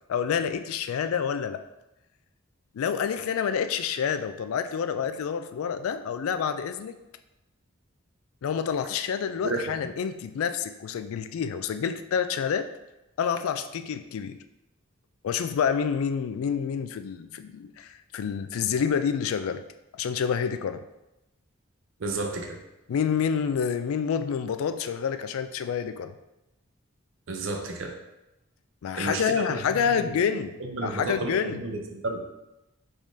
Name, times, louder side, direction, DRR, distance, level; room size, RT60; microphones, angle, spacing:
voice 1, 0.1-1.6 2.7-7.0 8.4-12.7 13.2-14.4 15.2-19.6 20.0-20.8 22.9-26.1 28.8-30.5 30.8-31.6, left 7 dB, 80° left, 11 dB, 0.3 m, -28 dB
voice 2, 22.0-22.6 27.3-27.9 28.9-30.2 30.6-32.2, right 2 dB, 65° right, 3 dB, 0.6 m, -32 dB
5.0 x 3.7 x 2.7 m, 0.96 s
head